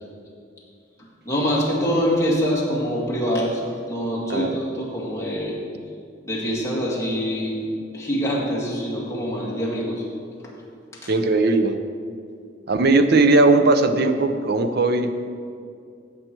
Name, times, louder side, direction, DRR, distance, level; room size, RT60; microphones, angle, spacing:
voice 1, 1.3-3.6 3.9-5.6 6.2-7.7 7.9-10.0 10.4-10.5 11.0-11.1, equal, 15° left, -5 dB, 2.1 m, -24 dB
voice 2, 11.1-11.8 12.7-15.1, right 2 dB, 60° right, 9 dB, 0.7 m, -18 dB
15.5 x 5.8 x 4.6 m, 2.3 s
head